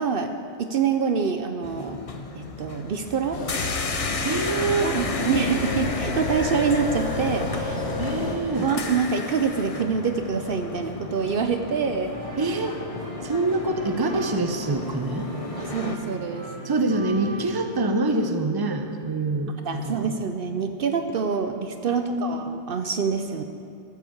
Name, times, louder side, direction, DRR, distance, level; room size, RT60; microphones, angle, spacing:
voice 1, 0.0-2.0 2.3-3.4 4.8-7.9 8.6-12.1 15.6-16.5 19.6-23.4, right 5 dB, 65° right, 7 dB, 0.8 m, -26 dB
sound 1, 1.6-16.0, left 3 dB, 40° left, 0.7 m, -34 dB
sound 2, 3.3-8.4, left 2 dB, 85° left, 1.4 m, -29 dB
voice 2, 4.2-4.9 8.0-8.7 12.4-12.8 13.2-15.3 16.6-20.1 21.9-22.4, right 2 dB, 25° right, 6 dB, 0.8 m, -25 dB
sound 3, 12.1-17.4, right 1 dB, 90° right, 3.1 m, -40 dB
13.0 x 8.2 x 7.3 m, 2.4 s
omnidirectional pair, 1.1 m